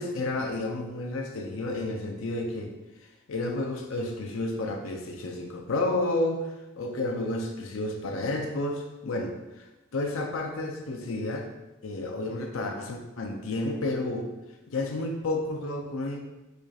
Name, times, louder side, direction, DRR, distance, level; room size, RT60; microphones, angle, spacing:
voice 1, 0.0-2.7 3.3-9.3 9.9-11.5 11.8-14.3 14.7-16.2, left 2 dB, 90° left, 3 dB, 0.6 m, -31 dB
5.0 x 4.2 x 2.4 m, 1.0 s
head